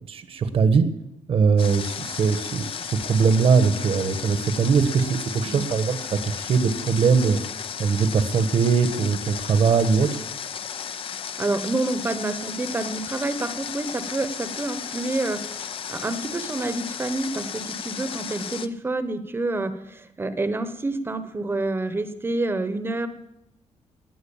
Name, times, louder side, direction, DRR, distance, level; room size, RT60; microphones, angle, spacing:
voice 1, 0.1-0.8 1.3-6.0 6.2-7.4 7.8-10.1, right 5 dB, 50° right, 11 dB, 1.2 m, -21 dB
Water, 1.6-18.7, left 7 dB, 45° left, 0.6 m, -34 dB
voice 2, 11.4-23.1, right 2 dB, 20° right, 10 dB, 1.0 m, -28 dB
19.0 x 7.8 x 7.1 m, 0.86 s
wide cardioid pair, 160°, 12 cm